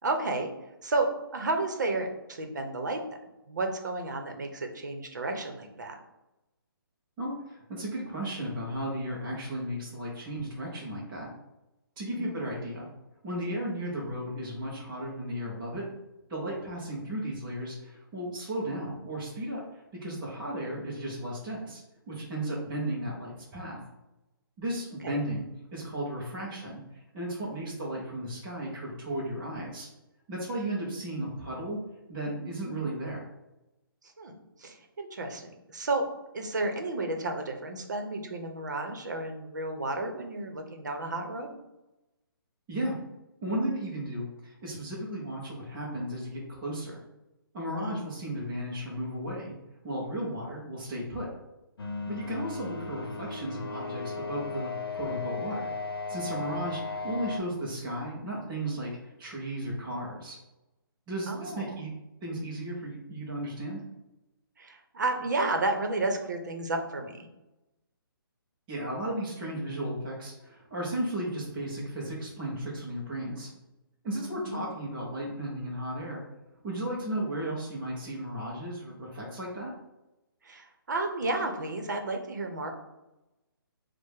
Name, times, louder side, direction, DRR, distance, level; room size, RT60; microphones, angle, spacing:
voice 1, 0.0-0.5 0.8-3.0 3.5-6.0 12.1-12.3 25.0-25.2 27.7-27.8 34.2-34.3 34.6-36.0 36.3-41.5 47.8-48.0 61.3-61.7 64.6-67.3 74.4-74.6 80.4-82.7, right 2 dB, 50° right, 4 dB, 0.8 m, -32 dB
voice 2, 7.2-11.3 12.0-12.9 13.2-15.9 16.3-21.8 22.1-23.8 24.6-26.8 27.1-29.9 30.3-31.8 32.1-33.3 42.7-43.0 43.4-47.0 47.5-49.5 49.8-51.3 52.1-55.7 56.1-60.4 61.1-61.9 62.2-63.8 68.7-73.5 74.0-76.2 76.6-79.7, right 1 dB, 5° right, -9 dB, 0.5 m, -35 dB
sound 1, 51.8-57.4, left 4 dB, 80° left, 0.8 m, -36 dB
4.6 x 2.1 x 4.6 m, 0.96 s
hypercardioid pair, 180°, 12 cm